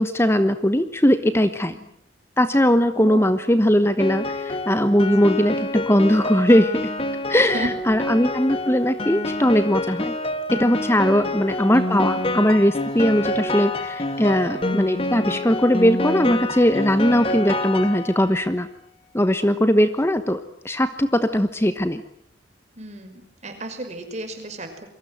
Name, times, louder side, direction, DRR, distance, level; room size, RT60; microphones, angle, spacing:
voice 1, 0.0-1.7 2.4-6.8 7.3-10.1 10.5-18.7 19.1-22.0, equal, 15° left, 10 dB, 1.1 m, -19 dB
voice 2, 3.0-3.3 7.5-8.0 11.1-11.4 19.5-19.6 22.8-24.9, right 1 dB, 40° right, 6 dB, 5.7 m, -34 dB
Piano, 4.0-18.4, left 1 dB, 30° left, 2.3 m, -27 dB
28.0 x 23.0 x 7.9 m, 0.70 s
head